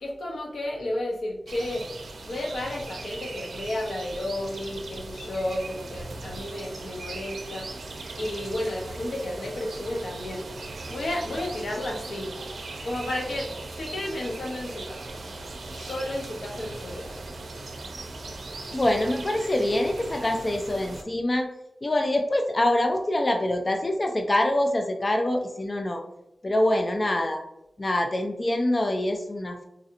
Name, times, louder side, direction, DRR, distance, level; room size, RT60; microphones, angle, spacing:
voice 1, 0.0-1.9 2.2-7.7 8.1-10.4 10.9-12.3 12.8-15.2 15.7-17.2, left 1 dB, 90° left, 0 dB, 0.7 m, -32 dB
sound 1, 1.5-21.0, right 2 dB, 85° right, 0.5 m, -39 dB
voice 2, 18.7-21.5 21.8-26.0 26.4-27.4 27.8-29.6, left 1 dB, 40° left, 4 dB, 0.4 m, -25 dB
4.0 x 2.7 x 2.4 m, 0.84 s
wide cardioid pair, 70°, 0 cm